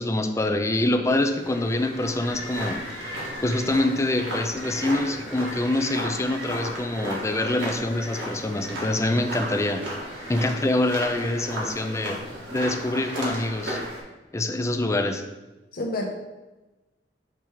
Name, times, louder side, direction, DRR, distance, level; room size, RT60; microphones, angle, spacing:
voice 1, 0.0-2.8 3.4-9.8 10.3-12.2 12.5-13.8 14.3-15.2, left 1 dB, 15° left, 7 dB, 0.4 m, -25 dB
sound 1, 1.2-14.0, equal, 90° right, 1.7 m, -34 dB
voice 2, 15.7-16.0, left 2 dB, 55° left, 0 dB, 0.8 m, -30 dB
6.0 x 3.5 x 4.5 m, 1.1 s
head